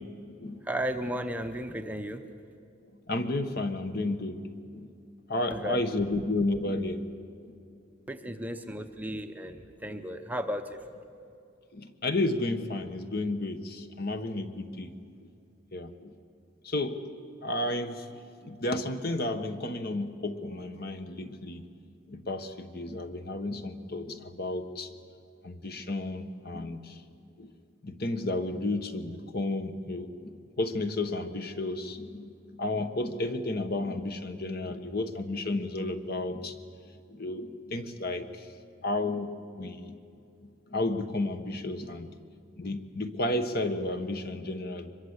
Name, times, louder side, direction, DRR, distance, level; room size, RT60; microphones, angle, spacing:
voice 1, 0.6-2.2 5.5-5.8 8.1-10.8, equal, 5° right, 6 dB, 0.8 m, -34 dB
voice 2, 3.1-4.4 4.7-4.9 5.3-7.0 7.4-7.6 11.7-14.9 15.2-15.3 15.7-16.1 16.6-17.0 17.4-18.1 18.4-21.6 22.1-24.9 25.4-27.0 27.4-27.5 27.8-32.3 32.6-36.5 37.1-38.5 38.8-39.9 40.4-42.1 42.6-44.9, left 2 dB, 45° left, 8 dB, 1.2 m, -32 dB
24.5 x 22.0 x 8.1 m, 2.5 s
head